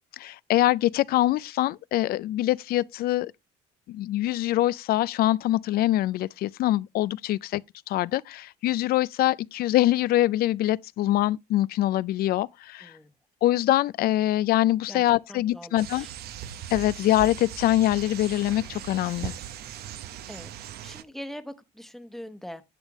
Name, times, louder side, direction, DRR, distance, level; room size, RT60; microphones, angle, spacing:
voice 1, 0.2-3.3 3.9-7.6 7.9-12.9 13.4-16.1 16.7-19.3, left 15 dB, 65° left, 0.4 m, -24 dB
voice 2, 12.8-13.1 14.9-15.0 15.3-16.1 20.3-20.5 20.8-22.6, equal, ahead, 1.0 m, -42 dB
sound 1, 15.8-21.0, right 10 dB, 70° right, 0.8 m, -39 dB
11.0 x 7.3 x 3.0 m
cardioid pair, 110°, 17 cm